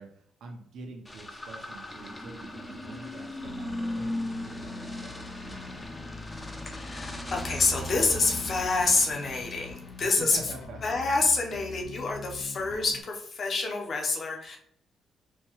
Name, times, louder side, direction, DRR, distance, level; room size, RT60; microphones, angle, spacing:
voice 1, 0.0-6.0 10.0-11.0, right 3 dB, 70° right, 2 dB, 0.8 m, -46 dB
sound 1, 1.0-10.6, left 1 dB, 15° left, 0.5 m, -38 dB
Bass guitar, 3.4-13.0, left 4 dB, 75° left, 0.4 m, -44 dB
voice 2, 6.7-10.4 10.8-14.6, left 3 dB, 50° left, 1 dB, 0.8 m, -27 dB
4.4 x 2.3 x 3.0 m, 0.66 s
cardioid pair, 90°, 0 cm